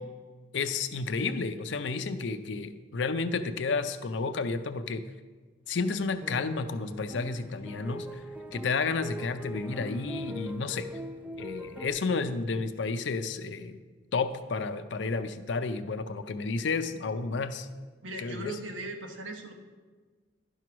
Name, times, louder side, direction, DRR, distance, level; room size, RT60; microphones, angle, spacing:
voice 1, 0.5-5.0 5.7-8.2 8.5-10.9 11.4-13.8 14.1-17.7 18.2-18.6, left 4 dB, 70° left, 11 dB, 0.5 m, -31 dB
sound 1, 6.1-11.9, equal, 10° right, 0.4 m, -41 dB
voice 2, 18.0-19.5, right 2 dB, 85° right, 4 dB, 1.1 m, -39 dB
11.0 x 4.6 x 5.9 m, 1.4 s
head